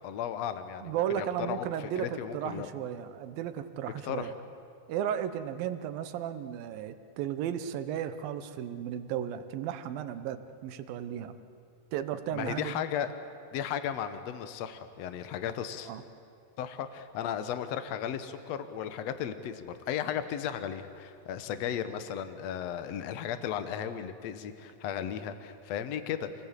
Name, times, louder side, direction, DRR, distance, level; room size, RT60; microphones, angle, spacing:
voice 1, 0.0-2.7 4.0-4.3 12.3-13.1 13.5-15.9 16.6-26.5, left 9 dB, 60° left, 10 dB, 1.9 m, -35 dB
voice 2, 0.8-4.3 4.9-11.4 11.9-12.9 15.9-16.0, right 10 dB, 80° right, 10 dB, 2.8 m, -34 dB
28.0 x 18.5 x 8.2 m, 2.5 s
omnidirectional pair, 4.1 m